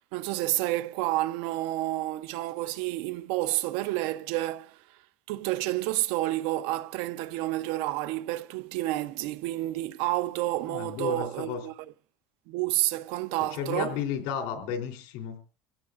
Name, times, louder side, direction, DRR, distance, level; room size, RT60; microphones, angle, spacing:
voice 1, 0.1-4.8 5.3-11.7 12.5-14.0, right 16 dB, 80° right, 0.7 m, -30 dB
voice 2, 10.7-11.6 13.5-15.4, left 7 dB, 80° left, 3.4 m, -33 dB
26.5 x 16.0 x 2.5 m
cardioid pair, 160°, 9 cm